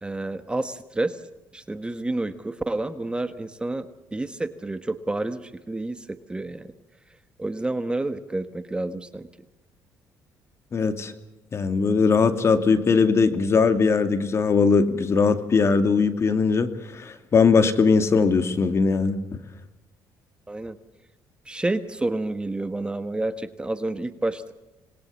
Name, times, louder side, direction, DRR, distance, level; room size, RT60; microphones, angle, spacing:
voice 1, 0.0-1.2 1.5-6.7 7.4-9.3 20.5-20.8 21.4-24.5, right 2 dB, 15° right, 11 dB, 1.3 m, -29 dB
voice 2, 10.7-11.1 11.5-19.2, left 5 dB, 40° left, 9 dB, 2.6 m, -20 dB
27.0 x 20.5 x 7.1 m, 1.0 s
cardioid pair, 100°, 7 cm